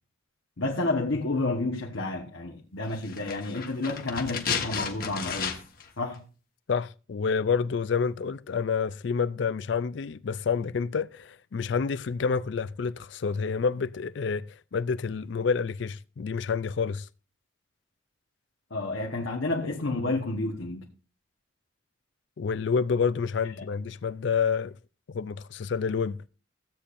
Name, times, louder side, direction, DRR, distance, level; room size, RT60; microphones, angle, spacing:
voice 1, 0.6-5.6 6.0-6.2 18.7-20.8, left 2 dB, 80° left, 1.2 m, -30 dB
sound 1, 3.0-5.9 6.1-6.2, left 6 dB, 45° left, 1.3 m, -33 dB
voice 2, 6.7-17.1 22.4-24.7 25.1-26.2, left 5 dB, 65° left, 0.4 m, -28 dB
15.5 x 8.4 x 2.6 m
head